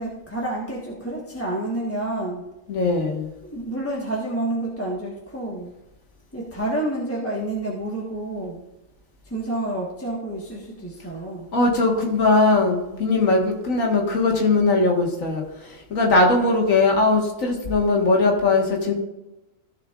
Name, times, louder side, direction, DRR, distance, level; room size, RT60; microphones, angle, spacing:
voice 1, 0.0-2.4 3.4-5.7 6.3-8.6 9.2-11.5, right 1 dB, 10° left, -4 dB, 1.5 m, -29 dB
voice 2, 2.7-3.3 11.5-18.9, left 3 dB, 75° left, 0 dB, 2.1 m, -20 dB
15.0 x 7.2 x 2.5 m, 0.99 s
omnidirectional pair, 1.4 m